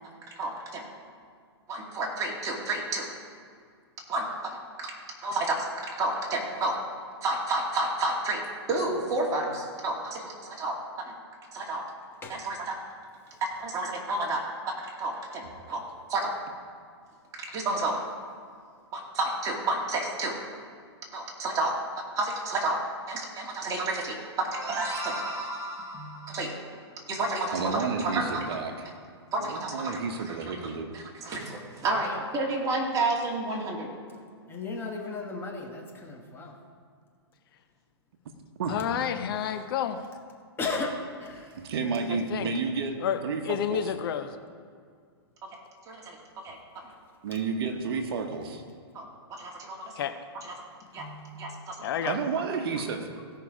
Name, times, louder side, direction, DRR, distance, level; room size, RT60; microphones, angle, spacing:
voice 1, 0.4-0.9 1.7-3.1 4.1-4.3 4.5-4.9 5.2-6.8 7.2-8.4 8.7-11.1 11.5-11.8 12.3-12.8 13.4-14.4 15.0-15.8 16.1-16.3 17.4-18.0 18.9-20.3 21.1-21.7 22.2-22.8 23.1-24.2 24.4-26.6 27.1-28.3 29.3-29.8 30.3-30.6 30.9-33.9 45.9-46.2 46.4-46.6 48.9-49.9 50.4-50.5 50.9-51.0 51.4-51.8 52.0-52.1, right 2 dB, 25° right, -2 dB, 2.4 m, -30 dB
voice 2, 25.9-26.4 32.0-32.3 34.5-36.6 39.4-39.5 40.6-41.6 50.9-51.4, left 3 dB, 15° left, 0 dB, 1.4 m, -36 dB
voice 3, 27.5-28.9 29.4-30.9 38.6-38.9 41.6-43.0 43.2-43.9 47.2-48.6 52.1-53.1, right 5 dB, 60° right, 5 dB, 1.2 m, -31 dB
voice 4, 38.7-40.0 42.3-42.5 43.0-43.2 43.4-44.3 50.0-50.1 51.8-52.2, left 9 dB, 55° left, 9 dB, 0.7 m, -29 dB
16.5 x 5.6 x 4.9 m, 2.1 s
hypercardioid pair, 135°, 14 cm